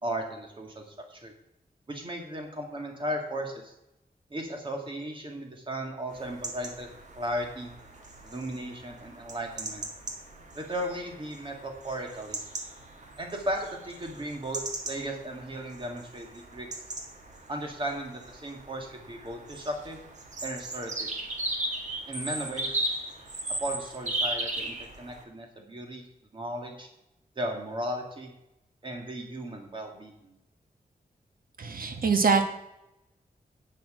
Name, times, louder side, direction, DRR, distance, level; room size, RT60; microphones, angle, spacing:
voice 1, 0.0-1.3 1.9-3.7 4.3-6.9 7.2-7.7 8.2-9.8 10.5-12.4 13.2-16.7 17.5-20.0 20.4-21.1 22.1-22.7 23.6-26.0 26.3-26.9 27.4-28.3 28.8-30.3, right 1 dB, 30° right, 2 dB, 2.1 m, -36 dB
sound 1, 6.1-25.2, right 1 dB, 50° right, 1.7 m, -37 dB
voice 2, 31.6-32.5, right 5 dB, 65° right, 6 dB, 1.4 m, -24 dB
11.0 x 8.6 x 5.0 m, 0.87 s
wide cardioid pair, 160°, 16 cm